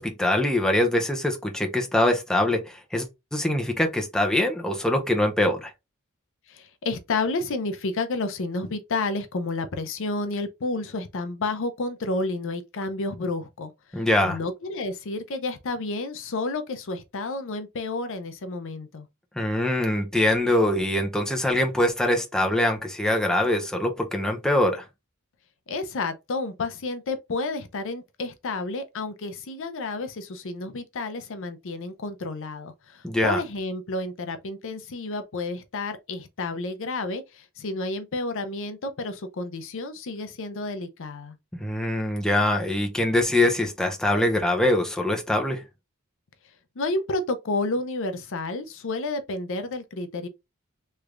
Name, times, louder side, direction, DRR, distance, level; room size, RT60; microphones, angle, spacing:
voice 1, 0.0-5.7 13.9-14.4 19.4-24.8 33.0-33.4 41.6-45.6, left 1 dB, 5° left, 0.6 m, -23 dB
voice 2, 6.5-19.1 25.7-41.4 46.8-50.3, left 3 dB, 65° left, 0.6 m, -30 dB
3.2 x 3.2 x 2.4 m
head